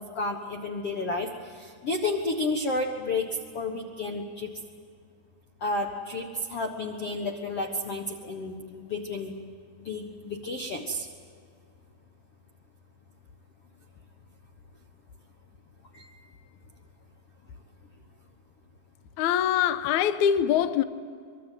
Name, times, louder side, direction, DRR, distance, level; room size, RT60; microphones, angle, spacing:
voice 1, 0.0-3.3 3.5-4.5 5.6-9.3 9.8-11.1 15.9-16.3, left 2 dB, 55° left, 1.8 m, -31 dB
voice 2, 19.2-20.8, left 9 dB, 75° left, 1.9 m, -23 dB
25.0 x 23.0 x 9.3 m
omnidirectional pair, 4.4 m